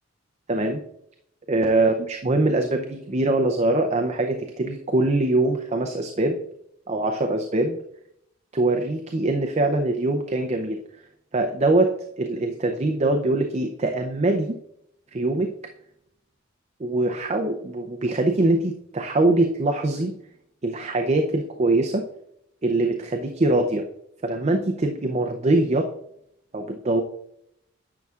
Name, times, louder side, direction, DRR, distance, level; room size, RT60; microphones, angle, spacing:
voice 1, 0.5-0.8 1.5-6.4 6.9-7.8 8.5-10.8 11.3-11.9 12.2-14.6 15.1-15.5 16.8-20.1 20.6-22.0 22.6-23.8 24.2-25.9 26.5-27.0, right 2 dB, 35° right, 4 dB, 0.5 m, -23 dB
10.5 x 6.8 x 2.4 m, 0.76 s
head